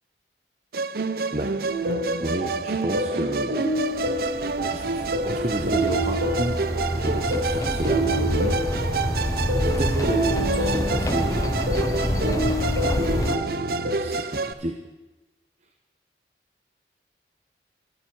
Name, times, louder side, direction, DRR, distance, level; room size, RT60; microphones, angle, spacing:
Musical instrument, 0.7-14.5, right 3 dB, 55° right, 0.6 m, -29 dB
sound 1, 1.7-14.0, right 1 dB, 85° right, 4.1 m, -28 dB
voice 1, 2.2-3.6 4.7-6.6 6.9-8.6 9.6-11.6 12.9-14.8, right 1 dB, 40° right, 4 dB, 0.9 m, -31 dB
sound 2, 3.8-13.4, left 1 dB, 20° left, 0.6 m, -28 dB
25.5 x 12.0 x 4.6 m, 1.1 s
head